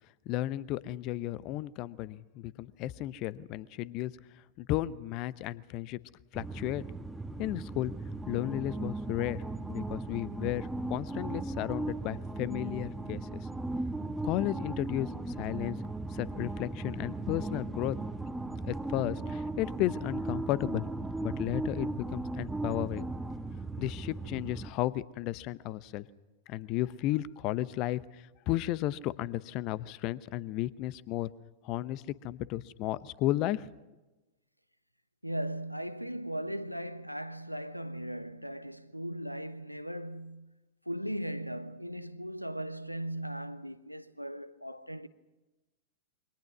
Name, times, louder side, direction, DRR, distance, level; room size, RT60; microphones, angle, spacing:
voice 1, 0.3-4.1 4.6-6.0 6.3-6.8 7.4-7.9 8.3-9.4 9.7-13.4 14.2-15.8 16.1-18.0 18.6-20.8 21.2-23.1 23.8-26.1 26.5-28.0 28.5-31.3 31.6-33.7, left 15 dB, 40° left, 0.9 m, -33 dB
sound 1, 6.3-24.7, right 2 dB, 5° right, 1.3 m, -37 dB
voice 2, 35.2-40.5 40.9-45.1, right 1 dB, 90° right, 1.0 m, -38 dB
28.5 x 24.5 x 6.1 m
figure-of-eight pair, 90°, 0 cm